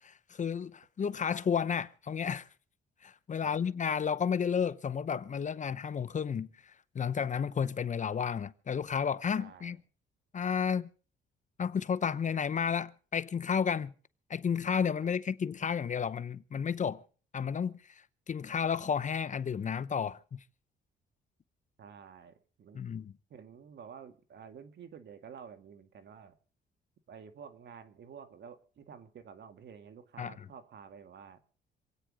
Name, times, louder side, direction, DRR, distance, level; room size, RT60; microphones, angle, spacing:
voice 1, 0.0-2.5 3.0-9.8 10.3-10.9 11.6-13.9 14.3-17.0 17.3-20.4 22.7-23.1 30.2-30.3, left 7 dB, 40° left, 0.8 m, -32 dB
voice 2, 9.4-9.8 15.0-15.1 21.8-22.8 23.3-26.4 27.1-31.4, right 7 dB, 60° right, 1.9 m, -50 dB
27.0 x 9.2 x 5.0 m
cardioid pair, 90°, 20 cm